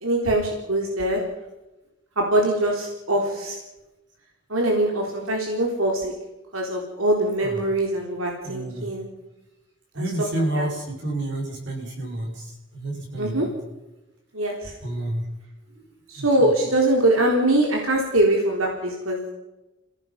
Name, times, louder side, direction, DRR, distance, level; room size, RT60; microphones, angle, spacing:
voice 1, 0.0-1.2 2.2-3.6 4.5-6.1 6.5-9.1 10.0-10.7 13.2-13.5 14.3-14.7 16.1-19.3, right 1 dB, 90° right, 0 dB, 3.9 m, -23 dB
voice 2, 8.4-8.9 9.9-13.5 14.8-15.2 16.2-16.5, right 1 dB, 55° right, 0 dB, 5.8 m, -29 dB
30.0 x 17.0 x 5.9 m, 1.0 s
head